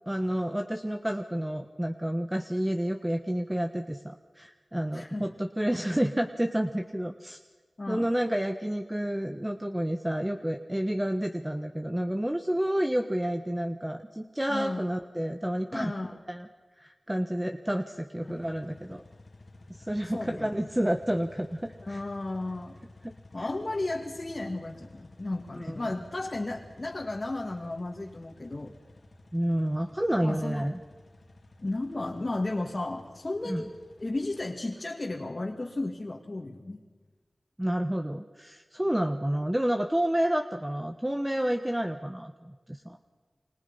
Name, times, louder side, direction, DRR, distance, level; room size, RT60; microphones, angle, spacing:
voice 1, 0.1-7.4 7.9-16.5 16.8-19.0 19.7-22.0 23.0-23.1 23.4-23.5 25.5-25.9 29.3-30.8 33.4-33.6 37.6-43.0, equal, 10° right, 6 dB, 1.3 m, -30 dB
voice 2, 4.9-5.3 7.8-8.1 14.5-14.8 15.7-16.2 18.2-18.3 20.1-20.5 21.9-22.8 23.3-28.8 30.2-30.7 31.6-33.7 34.0-36.8, left 2 dB, 45° left, 0 dB, 2.3 m, -34 dB
sound 1, 18.2-34.8, left 2 dB, 65° left, 2.6 m, -53 dB
29.5 x 25.5 x 5.7 m, 1.3 s
wide cardioid pair, 55°, 0 cm